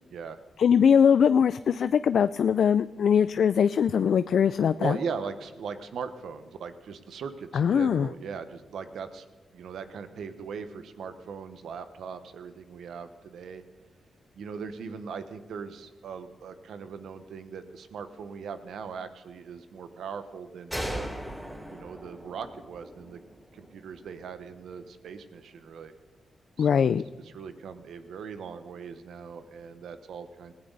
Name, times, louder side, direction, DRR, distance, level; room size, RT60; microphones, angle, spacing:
voice 1, 0.6-5.0 7.5-8.1 26.6-27.0, left 7 dB, 75° left, 14 dB, 0.4 m, -21 dB
voice 2, 4.8-9.2 9.5-13.6 14.3-21.1 21.7-23.2 23.5-25.9 26.6-26.9 27.2-30.5, right 6 dB, 80° right, 10 dB, 1.2 m, -39 dB
sound 1, 20.7-24.2, equal, 5° right, 6.7 m, -38 dB
19.0 x 15.5 x 4.0 m, 1.3 s
cardioid pair, 60°, 0 cm